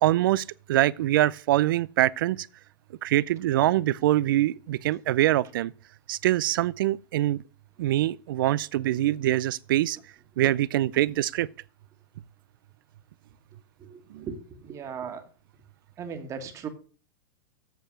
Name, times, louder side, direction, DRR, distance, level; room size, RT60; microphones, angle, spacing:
voice 1, 0.0-2.5 3.0-5.7 6.1-7.4 7.8-10.0 10.4-11.5 14.1-14.3, right 14 dB, 75° right, 0.4 m, -24 dB
voice 2, 13.8-15.2 16.0-16.7, right 6 dB, 25° right, 1.6 m, -38 dB
8.0 x 6.8 x 6.0 m
supercardioid pair, 135°, 11 cm